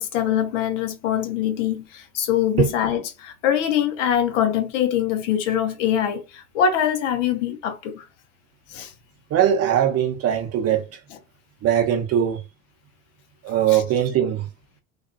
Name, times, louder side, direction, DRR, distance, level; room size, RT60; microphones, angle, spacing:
voice 1, 0.0-8.0 8.7-8.9 13.7-13.8, left 9 dB, 65° left, 0.6 m, -23 dB
voice 2, 9.3-11.0 11.6-12.4 13.4-14.4, right 10 dB, 35° right, 0.8 m, -21 dB
2.3 x 2.3 x 2.6 m
figure-of-eight pair, 70°, 41 cm